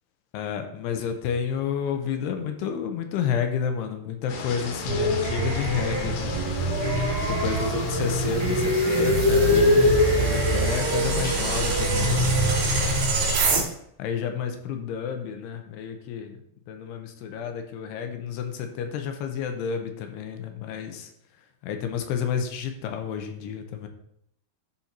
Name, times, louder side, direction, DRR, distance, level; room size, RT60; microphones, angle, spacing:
voice 1, 0.3-6.3 7.4-13.5 14.0-16.4 16.7-21.1 21.6-23.9, left 7 dB, 85° left, 6 dB, 2.9 m, -30 dB
sound 1, 4.3-13.0, left 4 dB, 70° left, 3.1 m, -36 dB
sound 2, 4.9-13.6, right 1 dB, 65° right, 3.8 m, -23 dB
12.5 x 4.3 x 4.4 m, 0.72 s
omnidirectional pair, 4.7 m